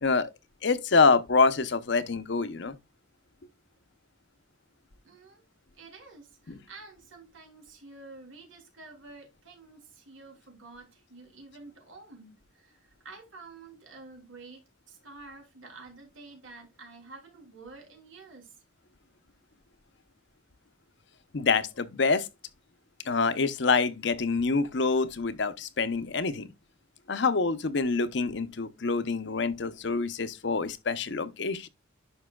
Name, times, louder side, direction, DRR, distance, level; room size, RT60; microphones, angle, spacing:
voice 1, 0.0-0.3 0.6-2.7 6.5-6.6 21.3-22.3 23.0-26.5 27.1-31.7, left 4 dB, 65° left, 0.8 m, -26 dB
voice 2, 5.0-5.4 5.7-18.6, right 3 dB, 90° right, 3.3 m, -49 dB
11.0 x 5.4 x 2.3 m
head